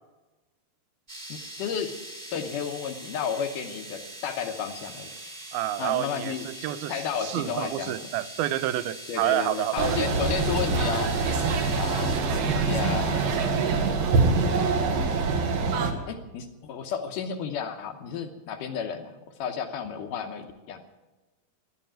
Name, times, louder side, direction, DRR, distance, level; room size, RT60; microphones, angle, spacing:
sound 1, 1.1-12.2, right 1 dB, 15° right, 1.3 m, -42 dB
voice 1, 1.3-2.0 2.3-5.1 5.8-7.9 9.1-11.1 11.8-13.4 14.9-15.2 16.1-20.8, left 7 dB, 70° left, 2.2 m, -32 dB
voice 2, 5.5-9.9 12.3-12.4, right 14 dB, 80° right, 2.4 m, -29 dB
sound 2, 9.8-15.9, right 4 dB, 65° right, 2.8 m, -24 dB
14.0 x 10.5 x 8.9 m
omnidirectional pair, 4.4 m